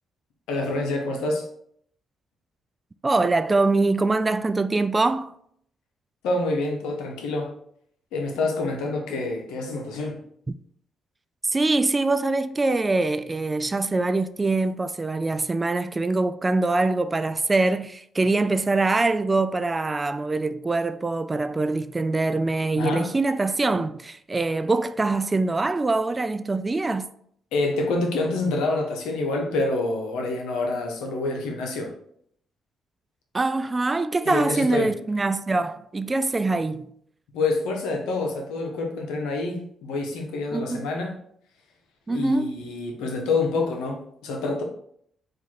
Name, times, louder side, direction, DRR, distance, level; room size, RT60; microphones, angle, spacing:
voice 1, 0.5-1.5 6.2-7.5 8.1-10.2 22.8-23.1 27.5-31.9 34.2-34.9 37.3-41.1 42.1-44.6, left 3 dB, 80° left, 0.9 m, -27 dB
voice 2, 3.0-5.3 10.5-10.6 11.5-27.1 33.3-36.9 40.5-40.9 42.1-42.6, right 3 dB, 30° right, 0.3 m, -24 dB
4.5 x 2.7 x 4.2 m
hypercardioid pair, 50°, 0 cm